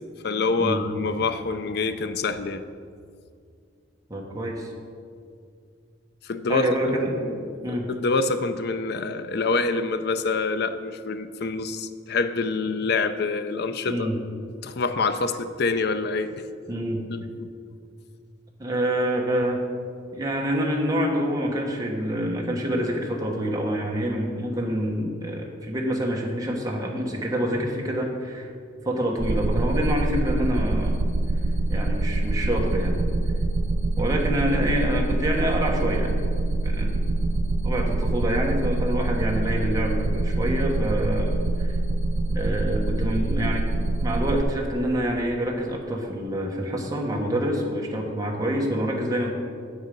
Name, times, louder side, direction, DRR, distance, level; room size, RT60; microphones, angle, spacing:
voice 1, 0.2-2.6 6.2-7.5 7.9-14.1 14.6-16.4 17.1-17.5, left 3 dB, 60° left, 10 dB, 0.5 m, -26 dB
voice 2, 4.1-4.7 6.5-7.2 7.6-7.9 13.8-14.2 16.7-17.0 18.6-19.6 20.1-28.5 28.8-31.0 31.7-33.0 34.0-36.2 36.6-37.0 37.6-41.7 42.3-43.7 44.0-49.3, equal, 20° right, -1 dB, 1.1 m, -26 dB
sound 1, 29.2-44.4, right 2 dB, 70° right, 0.5 m, -25 dB
8.8 x 8.1 x 5.2 m, 2.3 s
head